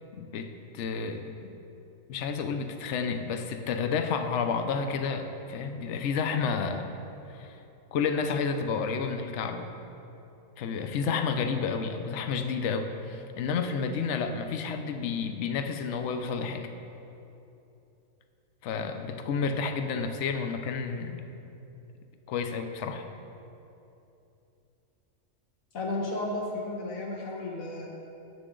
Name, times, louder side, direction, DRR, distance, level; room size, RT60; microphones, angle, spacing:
voice 1, 0.1-0.5 0.7-1.2 2.1-6.9 7.3-7.6 7.9-9.7 10.6-16.7 18.6-21.2 22.3-23.0, left 5 dB, 65° left, 7 dB, 1.0 m, -30 dB
voice 2, 25.7-27.9, left 2 dB, 85° left, -1 dB, 1.6 m, -33 dB
13.0 x 8.6 x 3.8 m, 2.9 s
omnidirectional pair, 1.4 m